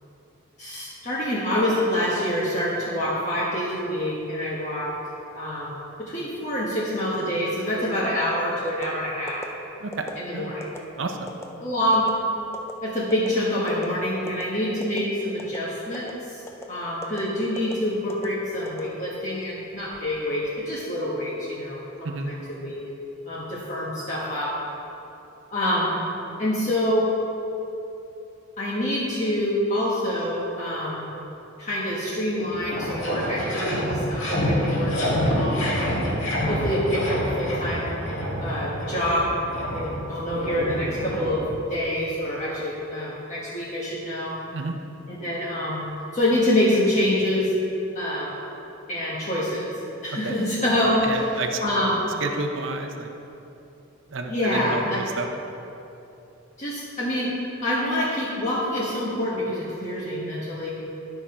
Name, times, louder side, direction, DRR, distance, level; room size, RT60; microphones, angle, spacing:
voice 1, 0.6-4.9 5.4-9.4 10.2-10.7 11.6-12.1 12.8-16.4 16.7-21.8 22.3-22.8 23.2-24.5 25.5-26.0 26.4-27.1 28.6-31.1 31.6-35.9 36.5-37.9 38.4-39.3 39.7-41.4 41.7-44.4 45.1-45.9 46.1-47.5 47.9-48.4 48.9-49.6 50.0-51.3 51.6-52.0 54.3-55.0 56.6-57.3 57.6-60.7, left 1 dB, 35° left, -7 dB, 1.2 m, -26 dB
sound 1, 8.7-8.9 9.3-9.5 9.9-10.2 10.6-10.8 11.3-11.5 11.9-12.1 12.5-12.7 13.1-13.3 13.7-13.9 14.3-14.4 14.8-15.1 15.4-15.6 15.9-16.1 16.5-16.7 17.0-17.2 17.6-17.7 18.1-18.3 18.7-19.3 19.7-20.0, left 2 dB, 10° left, 0.5 m, -37 dB
voice 2, 11.0-11.3 22.0-22.3 44.5-44.7 50.2-50.4 51.0-51.6 52.2-53.1 54.1-55.3, right 3 dB, 65° right, 4 dB, 0.7 m, -30 dB
sound 2, 32.0-32.1 32.4-41.8, equal, 70° left, 1.9 m, -27 dB
11.0 x 5.9 x 4.3 m, 2.9 s
head